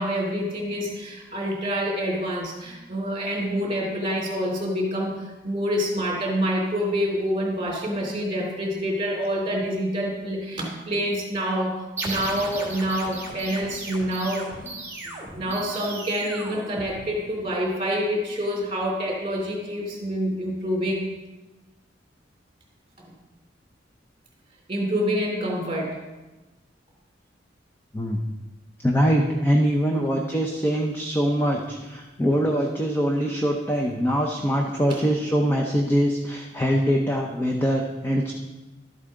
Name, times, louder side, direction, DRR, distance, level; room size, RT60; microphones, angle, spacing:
voice 1, 0.0-14.5 15.0-21.0 24.7-26.0 34.9-35.0, equal, 30° right, -2 dB, 3.2 m, -27 dB
sound 1, 12.0-17.4, right 2 dB, 15° right, 2.3 m, -36 dB
voice 2, 28.8-38.3, equal, 15° left, 0 dB, 0.7 m, -23 dB
12.5 x 8.2 x 3.8 m, 1.1 s
head